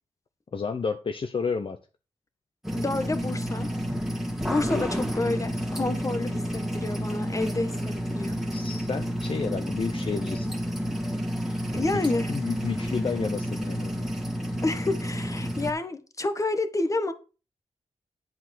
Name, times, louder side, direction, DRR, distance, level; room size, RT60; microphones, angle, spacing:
voice 1, 0.5-1.8 4.7-4.8 8.5-10.5 11.1-11.2 12.0-14.1, left 5 dB, 50° left, 0.9 m, -31 dB
sound 1, 2.6-15.7, equal, 5° right, 2.4 m, -30 dB
voice 2, 2.7-3.7 4.5-8.4 11.7-12.3 14.6-17.1, left 2 dB, 25° left, 1.4 m, -29 dB
10.5 x 4.8 x 5.9 m
cardioid pair, 75°, 12 cm